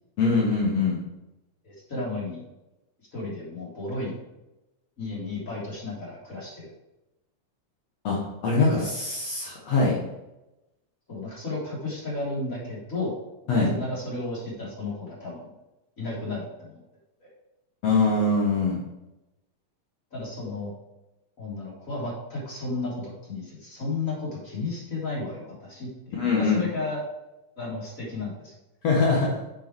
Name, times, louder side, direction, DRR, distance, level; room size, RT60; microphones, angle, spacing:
voice 1, 0.2-1.0 8.0-10.0 13.5-13.7 17.8-18.8 26.1-26.7 28.8-29.4, left 3 dB, 65° left, -4 dB, 2.5 m, -23 dB
voice 2, 1.6-2.5 3.1-4.2 5.0-6.7 8.7-8.9 11.1-13.1 13.5-15.5 16.0-16.8 17.2-17.3 20.1-20.7 21.4-27.0 27.6-28.5, left 2 dB, 25° left, -6 dB, 3.8 m, -33 dB
7.4 x 6.8 x 4.6 m, 0.96 s
omnidirectional pair, 3.3 m